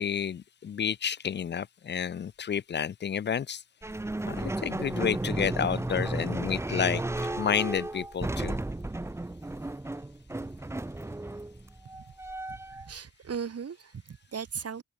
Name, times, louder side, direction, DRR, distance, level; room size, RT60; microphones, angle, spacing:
voice 1, 0.0-3.6 4.3-8.6, left 8 dB, 35° left, 0.4 m, -30 dB
sound 1, 3.8-12.9, right 2 dB, 10° right, 0.7 m, -34 dB
voice 2, 12.5-14.8, right 6 dB, 50° right, 3.3 m, -38 dB
wide cardioid pair, 155°, 31 cm